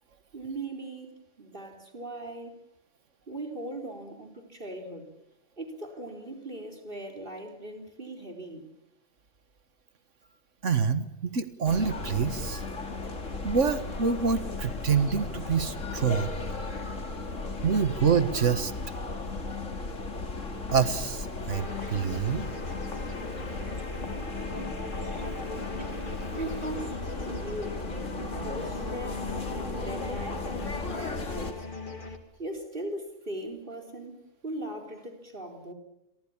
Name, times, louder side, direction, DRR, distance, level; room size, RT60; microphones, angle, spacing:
voice 1, 0.3-2.6 3.3-5.1 5.6-8.6 26.3-27.8 28.3-31.7 32.4-35.7, right 1 dB, 45° right, 4.3 m, -39 dB
voice 2, 10.6-12.6 13.4-16.4 17.6-18.7 20.7-22.5, right 6 dB, 75° right, 1.9 m, -26 dB
sound 1, 11.7-31.5, left 3 dB, 85° left, 3.0 m, -35 dB
sound 2, 21.5-32.2, left 2 dB, 40° left, 2.9 m, -40 dB
29.0 x 23.5 x 7.3 m
omnidirectional pair, 1.3 m